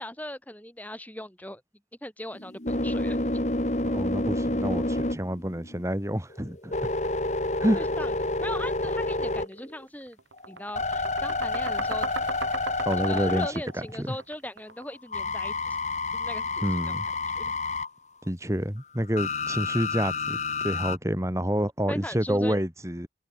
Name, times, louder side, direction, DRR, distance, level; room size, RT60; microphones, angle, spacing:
voice 1, 0.0-1.6 2.0-3.3 7.7-8.1 8.4-10.2 10.5-12.1 13.1-15.8 16.1-17.0 17.3-17.5 21.9-22.6, left 1 dB, 10° left, 4.9 m, -39 dB
sound 1, 2.3-5.9 6.3-9.8 10.3-14.0 15.1-17.9 19.1-21.0, left 2 dB, 40° left, 1.8 m, -29 dB
voice 2, 3.8-6.7 7.6-7.9 12.8-13.5 13.7-14.2 16.6-17.1 18.3-20.4 20.6-23.1, equal, 15° right, 4.7 m, -28 dB
sound 2, 9.5-9.7 10.0-15.0, right 4 dB, 90° right, 2.5 m, -37 dB
head